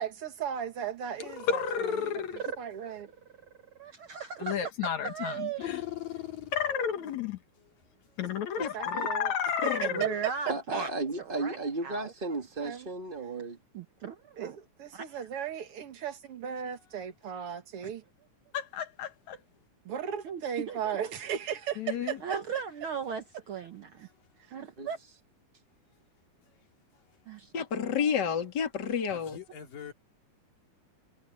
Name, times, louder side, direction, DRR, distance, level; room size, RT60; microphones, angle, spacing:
voice 1, 0.0-3.1 8.6-10.3 12.6-12.9 14.4-18.0 19.8-22.2, right 9 dB, 50° right, 2.3 m, -36 dB
voice 2, 1.5-2.4 4.4-5.8 6.5-7.4 8.2-10.1 18.5-19.4 21.8-22.2, left 7 dB, 65° left, 2.7 m, -32 dB
voice 3, 3.7-4.5 5.0-5.8 9.9-10.9 11.3-12.1 13.7-14.6 14.9-15.0 17.8-17.9 20.2-21.1 22.2-24.1 24.5-25.0 27.3-27.5, right 6 dB, 80° right, 1.1 m, -37 dB
voice 4, 5.6-6.5 7.6-7.7 8.2-8.3 29.1-29.9, left 12 dB, 85° left, 4.7 m, -40 dB
voice 5, 8.6-9.1 9.6-10.0 27.5-29.4, left 7 dB, 35° left, 3.0 m, -30 dB
voice 6, 10.5-13.6 24.8-24.9, right 2 dB, 25° right, 1.2 m, -34 dB
omnidirectional pair, 3.8 m